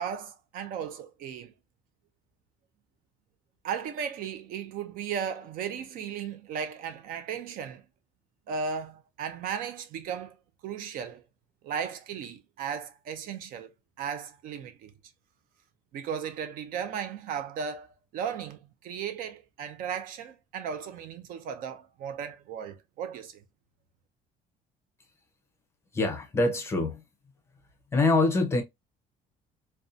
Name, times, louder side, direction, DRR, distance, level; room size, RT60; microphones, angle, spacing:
voice 1, 0.0-1.5 3.6-7.9 8.5-10.4 10.6-11.2 11.6-14.9 15.9-23.4, right 7 dB, 60° right, 0.5 m, -36 dB
voice 2, 25.9-27.0 27.9-28.6, left 2 dB, 15° left, 0.6 m, -24 dB
2.6 x 2.2 x 2.4 m
cardioid pair, 175°, 16 cm